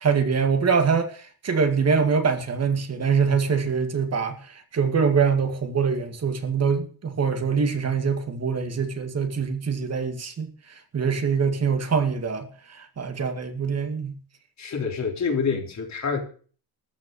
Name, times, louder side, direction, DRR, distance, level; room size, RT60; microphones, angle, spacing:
voice 1, 0.0-14.2, right 5 dB, 45° right, 2.1 m, -24 dB
voice 2, 14.6-16.2, left 5 dB, 50° left, 3.8 m, -27 dB
14.0 x 5.9 x 9.0 m
cardioid pair, 110°, 36 cm